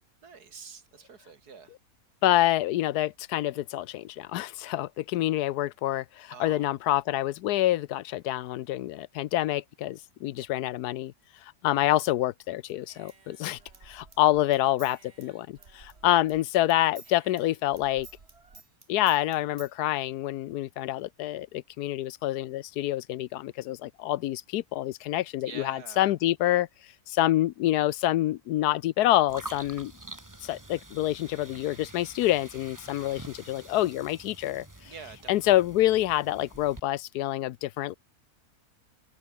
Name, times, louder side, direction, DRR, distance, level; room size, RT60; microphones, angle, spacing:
voice 1, 0.2-1.7 6.3-6.7 25.4-26.1 34.8-35.3, right 5 dB, 85° right, 2.8 m, -46 dB
voice 2, 2.2-11.1 11.6-13.6 13.9-18.1 18.9-26.7 27.1-29.9 30.4-34.6 35.3-38.0, left 14 dB, 85° left, 1.2 m, -27 dB
Human voice / Scissors, 12.7-16.4 16.7-19.7, right 4 dB, 40° right, 2.4 m, -53 dB
sound 1, 29.3-36.8, right 2 dB, 10° right, 1.6 m, -47 dB
open air
omnidirectional pair, 1.6 m